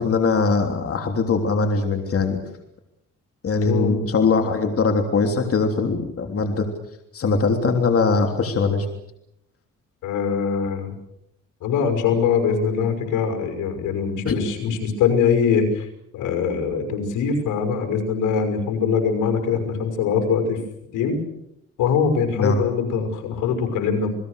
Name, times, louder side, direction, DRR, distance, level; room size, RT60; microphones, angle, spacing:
voice 1, 0.0-2.4 3.4-6.7 7.1-8.9 14.2-14.4 22.3-22.6, left 4 dB, 50° left, 4 dB, 3.3 m, -21 dB
voice 2, 3.6-4.0 10.0-10.9 11.6-15.9 16.1-20.6 20.9-21.2 21.8-24.1, left 6 dB, 85° left, 6 dB, 5.9 m, -22 dB
29.0 x 20.5 x 6.6 m, 0.80 s
cardioid pair, 90°, 30 cm